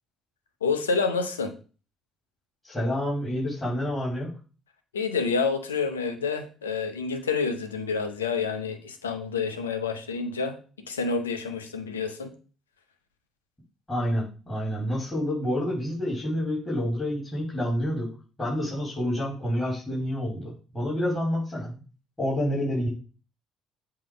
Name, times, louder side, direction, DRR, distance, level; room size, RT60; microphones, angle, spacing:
voice 1, 0.6-1.5 4.9-10.6 10.9-12.3, left 5 dB, 90° left, 7 dB, 0.8 m, -28 dB
voice 2, 2.6-4.4 13.9-18.1 18.4-21.8 22.2-22.9, equal, 15° left, -7 dB, 3.7 m, -28 dB
7.6 x 2.9 x 5.1 m, 0.36 s
hypercardioid pair, 55°, 0 cm